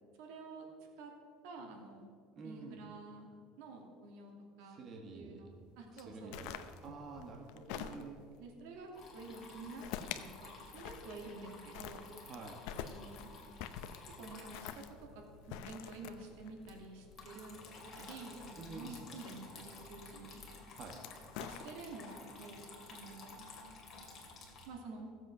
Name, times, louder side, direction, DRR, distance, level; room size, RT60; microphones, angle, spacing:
voice 1, 0.2-0.6 1.0-1.1 1.4-2.1 2.4-3.3 3.6-4.3 4.6-4.8 5.1-6.4 7.7-8.0 8.4-12.1 12.8-13.3 14.2-17.6 17.9-20.4 21.4-23.4 24.7-25.1, right 3 dB, 80° right, 1 dB, 2.5 m, -50 dB
voice 2, 2.3-2.8 4.7-5.4 5.9-8.2 12.2-12.6 18.6-19.1 20.7-21.0, right 4 dB, 35° right, 1 dB, 1.5 m, -49 dB
sound 1, 6.0-8.4 9.2-10.3 10.6-11.5 11.7-17.9 19.0-19.8 20.6-22.1, left 10 dB, 70° left, 0.7 m, -46 dB
Water tap faucet / Trickle dribble, 8.9-24.7, left 3 dB, 30° left, 2.4 m, -53 dB
16.0 x 7.7 x 6.1 m, 2.3 s
cardioid pair, 150°, 0 cm